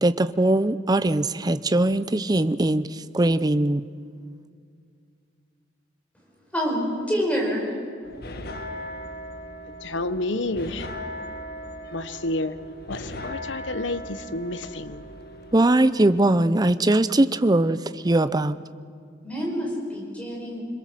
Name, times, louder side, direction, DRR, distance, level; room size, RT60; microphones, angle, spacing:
voice 1, 0.0-3.8 15.5-18.6, right 1 dB, 20° right, 13 dB, 0.6 m, -21 dB
voice 2, 6.5-7.7 19.2-20.6, equal, 10° left, -2 dB, 5.3 m, -27 dB
sound 1, 8.0-15.7, equal, 55° left, 1.7 m, -38 dB
voice 3, 9.6-10.9 11.9-12.6 12.9-15.1, left 2 dB, 90° left, 12 dB, 1.1 m, -30 dB
26.0 x 21.5 x 7.6 m, 2.3 s
head